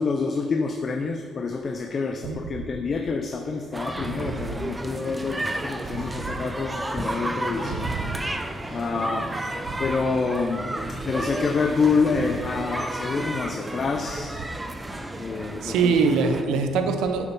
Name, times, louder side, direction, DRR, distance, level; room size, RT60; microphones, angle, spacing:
voice 1, 0.0-7.9 8.7-9.3 9.8-10.8 11.0-14.3 15.2-15.9 16.5-16.7, left 4 dB, 45° left, 4 dB, 0.7 m, -27 dB
sound 1, 3.7-16.4, right 1 dB, 15° right, 0.8 m, -32 dB
voice 2, 4.0-4.6 5.9-6.4 7.6-8.2 9.6-9.7 15.6-17.3, right 5 dB, 90° right, 6 dB, 0.7 m, -25 dB
8.2 x 7.2 x 5.5 m, 2.1 s
cardioid pair, 90°, 0 cm